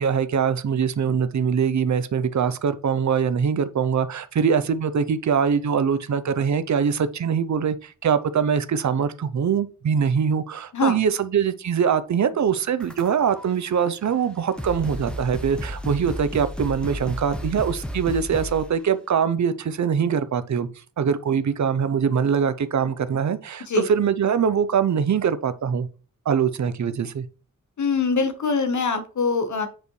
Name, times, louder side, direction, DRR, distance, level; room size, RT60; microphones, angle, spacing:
voice 1, 0.0-20.7 21.0-25.9 26.3-27.3, right 7 dB, 60° right, 0.7 m, -23 dB
sound 1, 12.8-13.4 14.2-14.3 14.6-18.8, equal, 5° left, 0.9 m, -33 dB
voice 2, 27.8-29.7, left 4 dB, 60° left, 1.2 m, -23 dB
8.9 x 5.2 x 3.2 m
wide cardioid pair, 160°, 33 cm